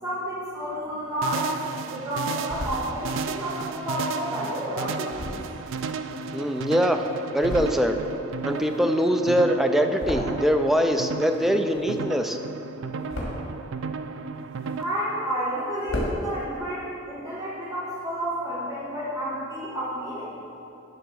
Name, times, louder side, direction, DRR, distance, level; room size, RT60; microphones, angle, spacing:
voice 1, 0.0-1.5 1.8-5.4 14.8-20.3, right 1 dB, 20° right, -12 dB, 1.7 m, -30 dB
sound 1, 0.8-1.7 2.1-2.8 3.5-6.8 7.2-8.0 8.3-10.7 11.0-12.2 12.6-13.6 14.1-15.2 15.5-15.6 15.7-16.2, equal, 75° left, 1.9 m, -36 dB
sound 2, 1.2-14.8, right 4 dB, 70° right, 0.4 m, -34 dB
voice 2, 6.3-7.0 7.3-8.0 8.4-12.4, equal, ahead, 5 dB, 0.4 m, -23 dB
11.5 x 3.9 x 6.2 m, 2.8 s
head